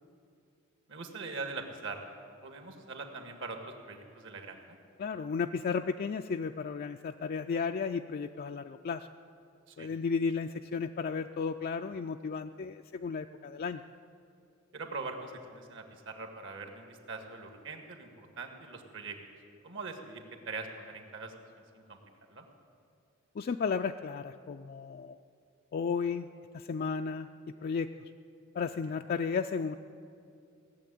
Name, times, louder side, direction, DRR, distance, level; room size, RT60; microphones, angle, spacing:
voice 1, 0.9-2.1 2.4-3.6 3.9-4.8 9.7-9.9 14.7-19.2 19.6-22.0 22.3-22.5, right 3 dB, 60° right, 4 dB, 1.7 m, -42 dB
voice 2, 5.0-9.1 9.8-13.8 23.4-25.2 25.7-26.3 26.5-27.3 27.6-27.9 28.5-29.8, left 5 dB, 45° left, 5 dB, 0.3 m, -33 dB
17.5 x 7.7 x 10.0 m, 2.4 s
head